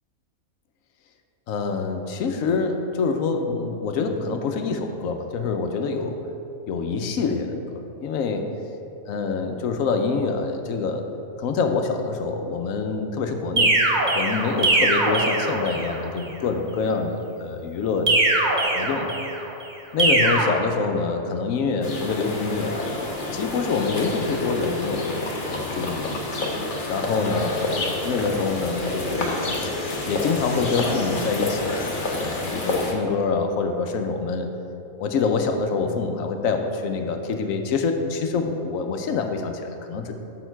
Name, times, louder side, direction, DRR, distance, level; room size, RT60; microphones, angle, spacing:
voice 1, 1.5-6.2 6.7-8.4 9.1-11.1 11.4-13.8 14.1-18.5 18.7-19.1 19.9-22.7 23.3-26.1 26.9-29.4 30.1-34.5 35.0-40.1, left 4 dB, 75° left, 5 dB, 1.0 m, -26 dB
sound 1, 13.6-16.0 18.1-19.4 20.0-20.4, right 2 dB, 40° right, 0.8 m, -21 dB
sound 2, 21.8-32.9, left 2 dB, 40° left, 1.0 m, -28 dB
6.6 x 6.4 x 4.5 m, 2.8 s
omnidirectional pair, 1.5 m